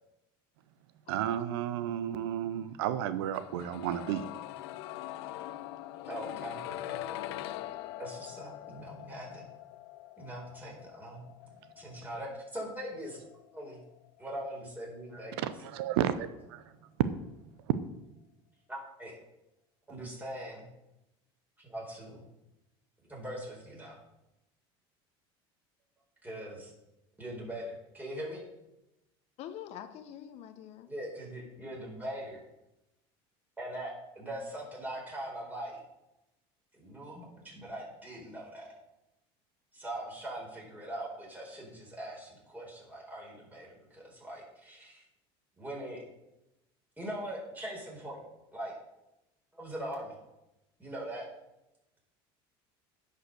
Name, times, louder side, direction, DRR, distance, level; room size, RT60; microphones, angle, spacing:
voice 1, 1.1-4.3 15.4-16.6, right 10 dB, 85° right, 13 dB, 0.6 m, -32 dB
sound 1, 3.3-15.2 15.4-15.5, left 14 dB, 80° left, 0.5 m, -43 dB
voice 2, 6.1-7.2 8.0-9.5 10.2-11.2 11.7-13.2 13.5-13.8 14.2-15.4 18.7-19.1 19.9-20.7 21.6-22.2 23.1-24.0 26.2-26.7 27.2-28.4 30.9-32.4 33.6-35.8 36.8-38.7 39.7-45.0 45.6-46.0 47.0-48.2 48.5-48.7 49.5-50.2 50.8-51.2, right 1 dB, 15° right, -2 dB, 4.4 m, -41 dB
voice 3, 29.4-30.9, left 10 dB, 55° left, 10 dB, 0.9 m, -45 dB
9.9 x 5.5 x 6.6 m, 0.93 s
supercardioid pair, 105°, 13 cm